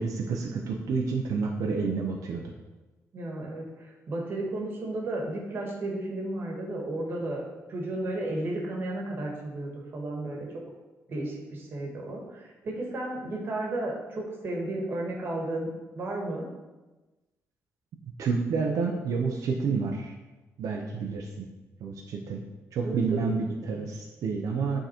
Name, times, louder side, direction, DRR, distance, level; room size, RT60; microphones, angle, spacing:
voice 1, 0.0-2.4 18.2-20.1 20.6-21.5 21.8-22.4 22.7-24.8, right 4 dB, 75° right, 1 dB, 0.7 m, -29 dB
voice 2, 3.1-7.4 7.7-10.5 11.1-15.7 15.9-16.5 22.8-23.3, right 2 dB, 40° right, -1 dB, 1.5 m, -33 dB
9.2 x 3.9 x 4.4 m, 1.1 s
wide cardioid pair, 175°, 6 cm